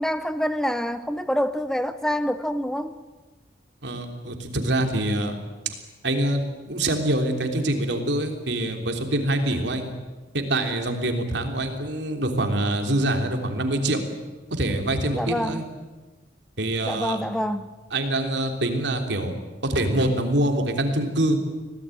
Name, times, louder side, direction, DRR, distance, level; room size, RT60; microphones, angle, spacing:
voice 1, 0.0-3.0 15.1-15.7 16.9-17.8, equal, 5° left, 12 dB, 0.7 m, -26 dB
voice 2, 3.8-5.3 6.0-9.9 10.3-14.0 14.6-15.6 16.6-17.2 17.9-19.3 19.6-21.4, right 1 dB, 80° right, 4 dB, 3.4 m, -25 dB
25.0 x 17.5 x 9.2 m, 1.3 s
head